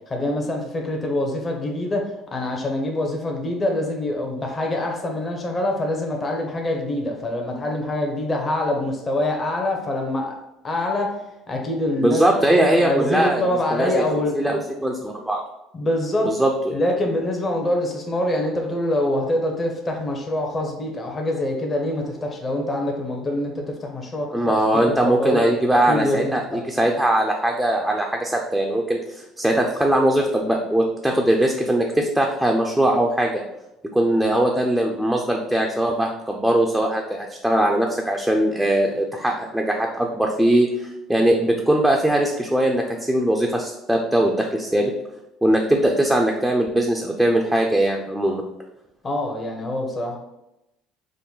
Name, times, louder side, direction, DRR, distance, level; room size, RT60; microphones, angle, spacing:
voice 1, 0.1-10.3 10.6-11.2 11.5-12.2 12.7-14.6 15.7-16.3 16.7-25.4 25.7-26.6 49.0-50.2, left 1 dB, 30° left, 1 dB, 0.7 m, -25 dB
voice 2, 12.0-13.4 13.7-14.0 14.4-15.4 16.3-16.8 24.3-33.3 33.9-44.9 45.4-48.4, right 1 dB, 5° right, 0 dB, 0.4 m, -20 dB
3.7 x 2.1 x 3.9 m, 0.90 s
supercardioid pair, 95°, 0 cm